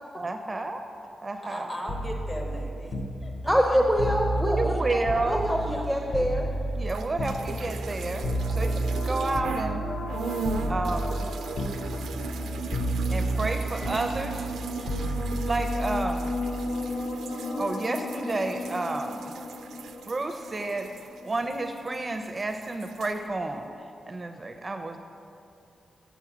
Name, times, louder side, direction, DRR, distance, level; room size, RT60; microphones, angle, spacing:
voice 1, 0.1-0.8 1.2-1.6 4.5-5.5 6.7-9.8 10.7-11.3 13.1-14.5 15.4-16.3 17.6-19.3 20.1-20.9 21.2-25.0, right 2 dB, 30° right, 6 dB, 0.5 m, -31 dB
voice 2, 1.4-3.8 4.6-4.8 5.6-5.9 13.8-14.1 15.2-16.2 17.1-17.2 19.3-19.6, equal, 30° left, 1 dB, 1.4 m, -40 dB
sound 1, 1.9-5.8 6.1-10.1 10.4-11.3 11.6-12.5 12.7-16.7 17.9-18.2, right 1 dB, 50° left, 1.0 m, -31 dB
voice 3, 3.5-4.7 5.3-6.5 8.5-8.8, equal, 5° left, 0 dB, 0.7 m, -25 dB
sound 2, 6.8-9.8 10.1-22.0 22.2-23.2, right 5 dB, 90° right, 0.3 m, -38 dB
sound 3, 7.9-21.5, left 2 dB, 75° left, 0.8 m, -37 dB
7.1 x 7.0 x 6.0 m, 2.6 s
cardioid pair, 95°, 0 cm